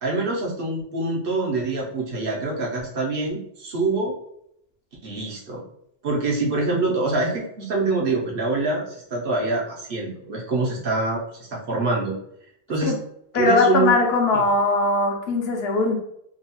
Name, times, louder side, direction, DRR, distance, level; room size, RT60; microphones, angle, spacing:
voice 1, 0.0-4.1 5.0-5.6 6.0-12.1 12.7-12.9 13.3-13.9 14.3-14.4, right 3 dB, 65° right, -3 dB, 0.9 m, -25 dB
voice 2, 13.3-16.0, left 3 dB, 80° left, 1 dB, 0.9 m, -20 dB
2.9 x 2.2 x 2.8 m, 0.74 s
omnidirectional pair, 1.0 m